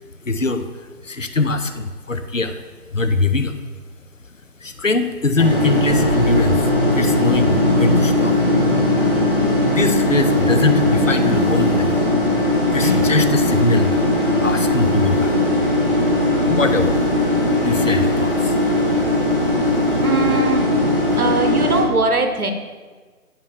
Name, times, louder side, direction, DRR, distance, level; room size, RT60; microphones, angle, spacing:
voice 1, 0.2-0.7 1.0-2.6 2.9-3.6 4.6-6.6 7.0-8.3 9.7-11.9 12.7-14.0 14.4-15.3 16.5-17.0 17.6-18.6, left 3 dB, 55° left, 9 dB, 0.6 m, -21 dB
sound 1, 5.4-21.8, left 1 dB, 35° left, 1.3 m, -18 dB
voice 2, 20.0-20.8 21.2-22.5, right 3 dB, 70° right, 5 dB, 1.1 m, -20 dB
9.7 x 5.7 x 3.5 m, 1.4 s
figure-of-eight pair, 175°, 45 cm